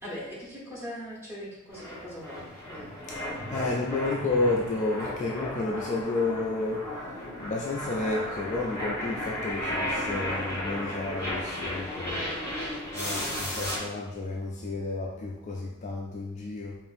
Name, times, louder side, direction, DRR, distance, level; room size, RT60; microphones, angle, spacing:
voice 1, 0.0-2.9 13.1-13.5, equal, 10° right, -7 dB, 1.1 m, -41 dB
sound 1, 1.7-13.8, left 1 dB, 15° left, 1.3 m, -34 dB
voice 2, 3.5-6.9 7.4-12.3 12.9-16.8, left 3 dB, 30° left, -1 dB, 0.3 m, -31 dB
5.1 x 2.5 x 2.6 m, 0.95 s
head